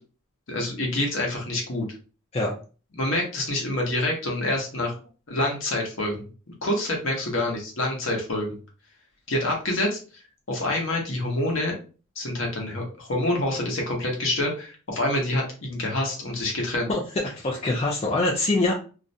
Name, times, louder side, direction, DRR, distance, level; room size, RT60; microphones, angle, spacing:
voice 1, 0.5-1.9 3.0-5.0 5.3-6.3 6.6-8.5 9.3-10.0 10.5-11.7 12.2-16.9, left 1 dB, 60° left, 0 dB, 0.8 m, -26 dB
voice 2, 16.9-18.7, left 2 dB, 30° left, -3 dB, 0.4 m, -24 dB
2.5 x 2.1 x 2.6 m, 0.35 s
head